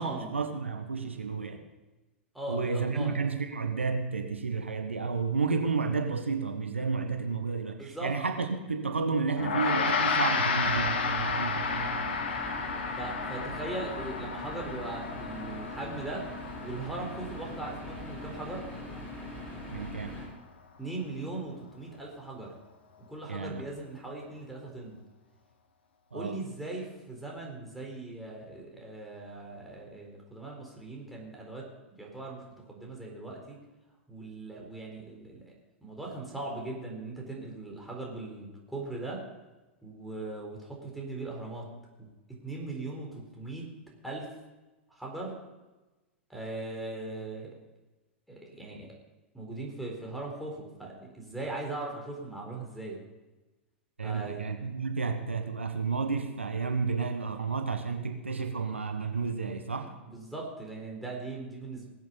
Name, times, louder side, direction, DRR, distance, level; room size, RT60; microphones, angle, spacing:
voice 1, 0.0-1.6 2.5-12.1 19.7-20.1 23.3-23.6 26.1-26.4 54.0-59.9, right 4 dB, 80° right, 6 dB, 1.3 m, -31 dB
voice 2, 2.3-3.2 7.8-8.1 13.0-16.3 16.6-18.6 20.8-22.5 23.1-25.0 26.1-31.7 32.0-32.4 32.7-33.6 34.1-35.4 35.8-39.2 39.8-41.7 42.0-42.1 42.4-43.7 44.0-44.3 44.9-45.4 46.3-47.6 48.3-48.9 49.3-53.0 54.0-54.5 60.1-61.9, right 2 dB, ahead, -3 dB, 4.2 m, -39 dB
Gong, 9.4-19.0, left 5 dB, 60° left, 1.5 m, -32 dB
sound 1, 10.6-20.3, left 1 dB, 25° left, 5.9 m, -42 dB
20.0 x 8.3 x 5.4 m, 1.1 s
figure-of-eight pair, 95°, 6 cm